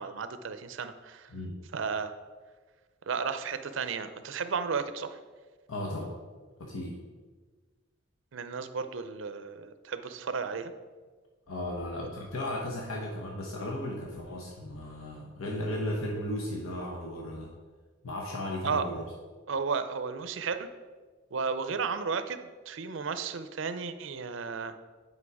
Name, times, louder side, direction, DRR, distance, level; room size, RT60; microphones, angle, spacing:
voice 1, 0.0-1.3 1.7-2.1 3.1-5.2 8.3-10.7 12.0-12.1 18.6-18.9 19.5-20.7 21.3-24.7, right 5 dB, 65° right, 10 dB, 0.5 m, -33 dB
voice 2, 5.7-6.1 6.6-7.0 11.5-17.5 18.0-19.1, left 1 dB, 85° left, -1 dB, 1.0 m, -35 dB
8.4 x 5.3 x 4.7 m, 1.4 s
head